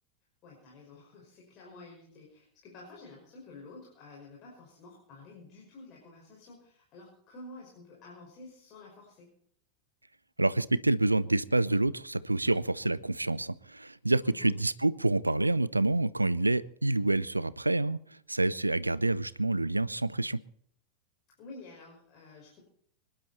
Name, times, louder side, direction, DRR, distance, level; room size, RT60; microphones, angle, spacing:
voice 1, 0.4-9.3 14.2-14.5 21.4-22.6, left 2 dB, 35° left, 5.6 m, -50 dB
voice 2, 10.4-18.0 18.3-20.4, right 2 dB, 85° right, 0.6 m, -27 dB
25.0 x 11.5 x 4.3 m
figure-of-eight pair, 90°, 0 cm